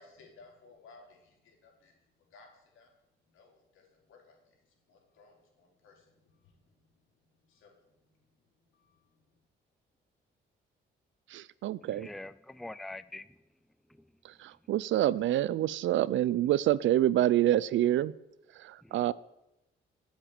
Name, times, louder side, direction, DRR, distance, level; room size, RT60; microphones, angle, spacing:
voice 1, 0.0-1.9 2.3-2.9 3.2-6.8 7.1-9.4, left 3 dB, 80° left, 4.3 m, -60 dB
voice 2, 11.3-12.1 14.2-18.1 18.6-19.1, right 13 dB, 75° right, 0.6 m, -27 dB
voice 3, 11.8-13.5 13.9-14.1 18.8-19.1, left 2 dB, ahead, 0.5 m, -45 dB
13.5 x 7.5 x 9.0 m
cardioid pair, 90°, 20 cm